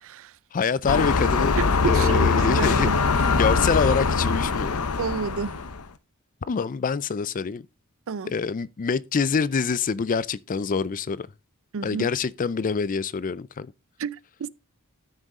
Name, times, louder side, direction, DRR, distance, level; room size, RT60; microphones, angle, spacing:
voice 1, 0.0-0.3 1.6-2.9 5.0-5.5 8.1-8.3 11.7-12.1 14.0-14.5, right 6 dB, 65° right, 0.5 m, -30 dB
voice 2, 0.5-2.9 3.4-4.8 6.5-7.6 8.3-11.3 11.8-13.7, left 5 dB, 40° left, 0.4 m, -25 dB
sound 1, 0.9-5.8, left 4 dB, 80° left, 0.9 m, -22 dB
12.5 x 6.5 x 3.6 m
head